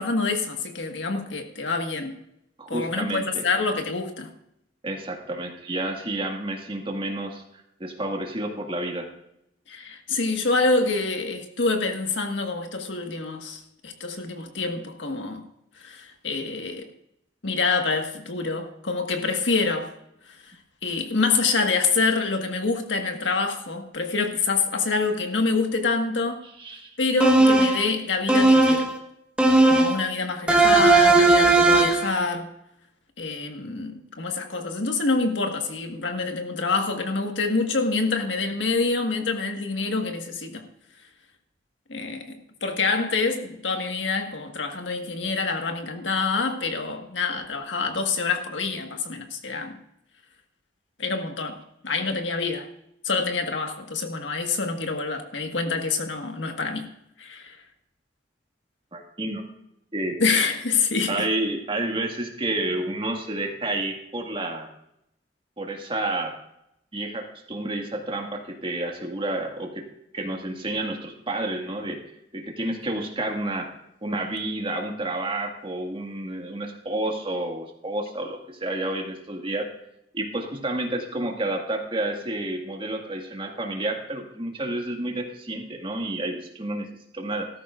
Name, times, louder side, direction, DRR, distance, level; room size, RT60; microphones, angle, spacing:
voice 1, 0.0-2.2 2.7-4.3 9.7-15.4 15.8-16.9 17.4-19.9 20.4-20.5 20.8-26.4 27.0-28.9 29.7-32.5 33.2-40.6 41.9-49.8 51.0-52.7 53.0-56.8 57.2-57.6 60.2-61.3, left 4 dB, 80° left, 4 dB, 1.6 m, -26 dB
voice 2, 2.6-3.4 4.8-7.4 7.8-9.1 26.6-26.9 58.9-59.4 59.9-60.2 61.1-64.7 65.6-66.3 66.9-69.9 70.1-72.0 72.3-79.7 80.1-86.9 87.1-87.5, right 2 dB, 30° right, 2 dB, 1.9 m, -30 dB
sound 1, 27.2-27.9 28.3-28.9 29.4-30.0 30.5-32.1, right 2 dB, 5° right, 1.3 m, -17 dB
16.5 x 13.5 x 2.5 m, 0.79 s
head